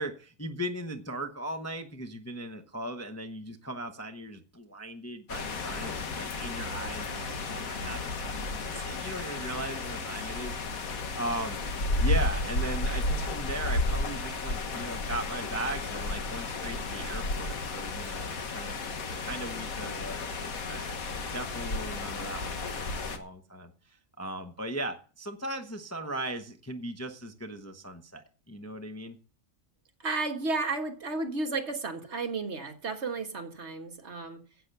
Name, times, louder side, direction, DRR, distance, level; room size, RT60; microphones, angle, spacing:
voice 1, 0.0-8.4 8.6-11.6 12.0-20.9 21.3-29.2, right 1 dB, 15° left, 0.8 m, -38 dB
sound 1, 5.3-23.2, left 2 dB, 70° left, 1.7 m, -33 dB
voice 2, 30.0-34.4, right 3 dB, 50° right, 1.7 m, -33 dB
9.9 x 8.3 x 6.7 m
omnidirectional pair, 1.6 m